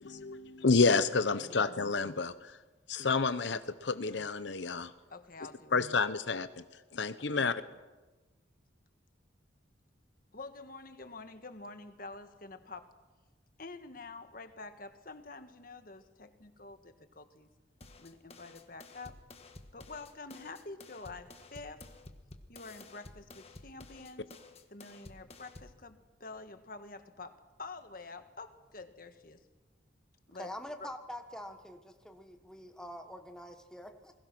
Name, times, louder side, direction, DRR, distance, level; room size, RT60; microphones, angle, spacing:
voice 1, 0.0-2.6 2.9-4.9 5.7-6.5 6.9-7.5, left 4 dB, 70° left, 0.8 m, -29 dB
voice 2, 1.3-1.6 5.1-5.8 7.2-7.6 10.3-12.9 13.6-17.5 18.0-19.2 19.7-21.9 22.5-24.3 24.7-29.4 30.3-30.5 30.8-30.9, left 3 dB, 50° left, 1.6 m, -48 dB
sound 1, 17.8-25.8, left 2 dB, 30° left, 1.6 m, -53 dB
voice 3, 30.4-34.1, left 1 dB, 5° left, 1.4 m, -45 dB
28.5 x 21.0 x 6.1 m
head